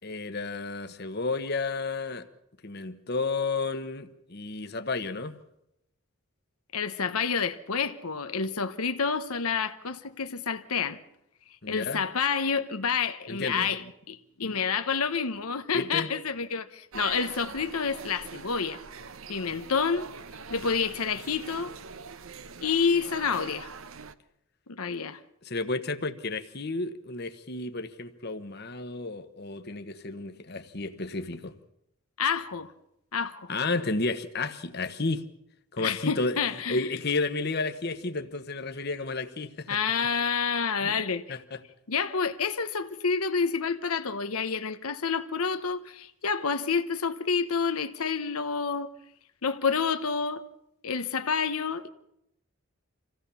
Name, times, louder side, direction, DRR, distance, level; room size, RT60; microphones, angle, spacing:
voice 1, 0.0-2.3 2.6-5.4 11.6-12.0 13.3-13.9 15.7-16.1 25.4-31.5 33.5-35.2 35.7-36.4 36.7-39.8 40.8-41.0 41.3-41.6, left 3 dB, 50° left, 1.2 m, -32 dB
voice 2, 6.7-11.0 11.7-18.8 19.3-20.1 20.5-21.7 22.6-23.7 24.7-25.2 32.2-32.7 33.1-33.5 35.8-36.8 39.7-41.2 41.9-48.9 49.4-50.4 50.8-51.9, left 5 dB, 85° left, 1.0 m, -28 dB
sound 1, 16.9-24.1, right 5 dB, 70° right, 0.9 m, -43 dB
26.5 x 16.0 x 7.0 m
head